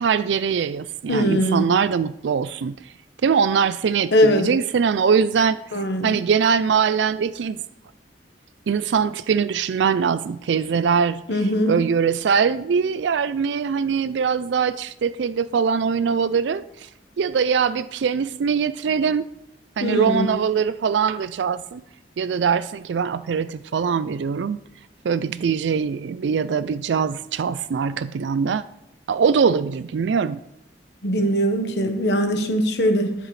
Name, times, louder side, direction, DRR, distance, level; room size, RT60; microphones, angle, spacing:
voice 1, 0.0-2.7 3.2-7.6 8.7-11.2 11.7-16.9 17.2-19.3 19.8-21.8 22.2-24.6 25.0-28.6 29.1-30.4, right 6 dB, 85° right, 15 dB, 0.4 m, -22 dB
voice 2, 1.1-1.7 4.1-4.5 5.7-6.1 11.3-11.8 19.8-20.3 31.0-33.1, equal, 70° left, 5 dB, 1.3 m, -21 dB
19.5 x 7.6 x 3.2 m, 0.79 s
head